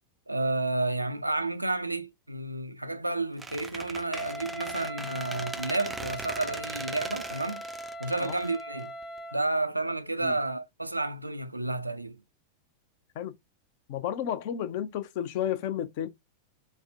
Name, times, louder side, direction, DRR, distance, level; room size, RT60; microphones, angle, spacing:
voice 1, 0.3-7.6 8.0-8.9 9.3-12.2, right 2 dB, 85° right, 0.4 m, -31 dB
Squeak, 3.4-9.2, right 3 dB, 10° right, 0.4 m, -40 dB
Wind instrument woodwind instrument, 4.1-9.5, equal, 15° left, 0.9 m, -40 dB
voice 2, 13.9-16.1, left 10 dB, 50° left, 0.5 m, -32 dB
3.3 x 2.1 x 2.5 m
figure-of-eight pair, 90°, 0 cm